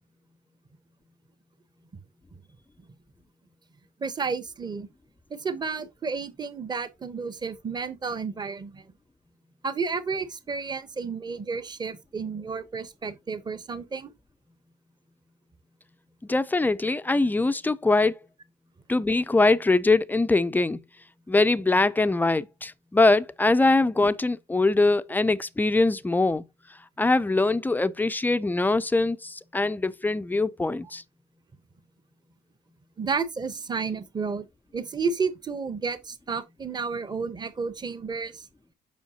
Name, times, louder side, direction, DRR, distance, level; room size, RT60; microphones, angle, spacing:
voice 1, 4.0-4.9 5.3-8.9 9.6-14.1 33.0-34.5 34.7-38.5, right 5 dB, 25° right, 0.9 m, -31 dB
voice 2, 16.2-18.2 18.9-20.8 21.3-26.4 27.0-31.0, left 2 dB, 10° left, 0.4 m, -22 dB
7.3 x 5.6 x 2.8 m
cardioid pair, 110°, 17 cm